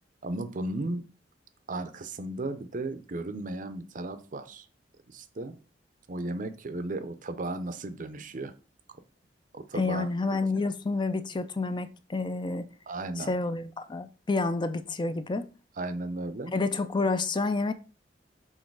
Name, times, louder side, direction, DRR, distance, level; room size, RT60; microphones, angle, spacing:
voice 1, 0.2-1.0 1.7-4.7 5.1-5.6 6.1-8.5 9.5-10.4 12.9-13.3 15.8-16.5, right 2 dB, 45° right, 0.6 m, -35 dB
voice 2, 9.8-12.7 13.2-15.5 16.5-17.7, left 3 dB, 25° left, 0.4 m, -29 dB
6.4 x 3.9 x 4.7 m
head